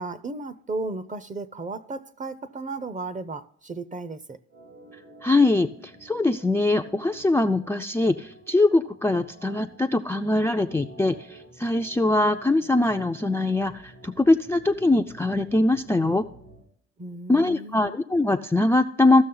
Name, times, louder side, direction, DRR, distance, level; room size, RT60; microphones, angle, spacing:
voice 1, 0.0-4.4 17.0-18.0, right 3 dB, 25° right, 0.7 m, -34 dB
Organ, 4.5-16.7, right 2 dB, 80° right, 3.8 m, -50 dB
voice 2, 5.2-16.3 17.3-19.2, left 2 dB, 10° left, 0.4 m, -22 dB
14.5 x 6.3 x 3.8 m
cardioid pair, 90°, 30 cm